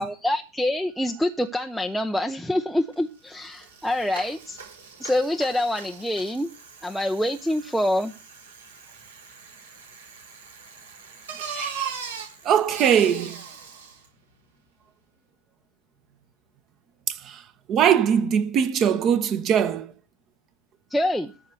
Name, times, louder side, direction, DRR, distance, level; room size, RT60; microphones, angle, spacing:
voice 1, 0.0-4.6 5.0-6.5 6.8-8.1 20.9-21.3, left 1 dB, ahead, 0.8 m, -26 dB
Bicycle, 2.9-3.0 3.3-14.1, right 6 dB, 65° right, 4.6 m, -40 dB
voice 2, 11.5-11.9 12.4-13.4 17.3-17.4 17.7-19.9, right 8 dB, 30° right, 1.4 m, -21 dB
14.0 x 5.6 x 8.0 m
figure-of-eight pair, 90°, 0 cm